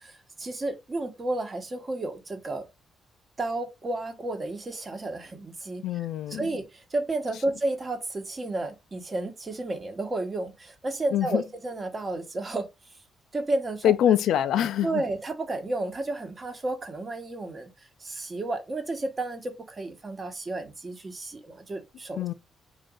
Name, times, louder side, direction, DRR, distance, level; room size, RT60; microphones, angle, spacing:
voice 1, 0.0-2.7 3.4-12.7 13.3-13.9 14.8-22.2, right 2 dB, 30° right, 1.1 m, -32 dB
voice 2, 5.8-6.5 11.1-11.4 13.8-15.0 22.2-22.3, left 10 dB, 75° left, 0.4 m, -24 dB
3.8 x 2.6 x 3.6 m
cardioid pair, 90°, 0 cm